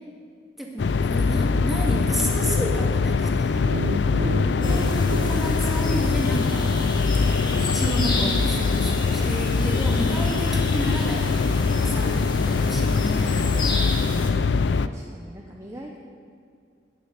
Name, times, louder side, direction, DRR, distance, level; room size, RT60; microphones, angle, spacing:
voice 1, 0.6-3.6 4.7-6.8 7.6-12.3 12.6-14.0, right 1 dB, ahead, -2 dB, 2.0 m, -31 dB
sound 1, 0.8-14.9, left 4 dB, 65° left, 0.4 m, -23 dB
sound 2, 3.5-6.6, right 1 dB, 60° right, 0.6 m, -33 dB
voice 2, 4.2-5.2 8.0-8.7 9.7-10.0 11.9-12.8 14.3-14.4 14.8-16.0, equal, 15° right, 0 dB, 0.8 m, -40 dB
sound 3, 4.6-14.3, left 2 dB, 25° left, 1.6 m, -32 dB
13.0 x 6.9 x 9.4 m, 2.3 s
head